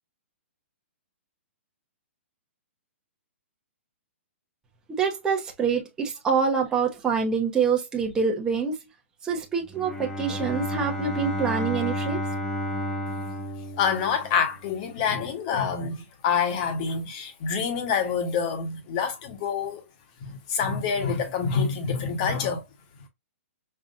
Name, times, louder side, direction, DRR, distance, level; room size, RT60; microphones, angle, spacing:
voice 1, 5.0-8.8 9.2-12.2, right 6 dB, 10° right, 1.0 m, -26 dB
Bowed string instrument, 9.6-14.6, equal, 10° left, 0.6 m, -31 dB
voice 2, 13.8-19.8 20.2-22.6, left 6 dB, 35° left, 1.3 m, -27 dB
5.7 x 2.4 x 2.5 m
hypercardioid pair, 155°, 7 cm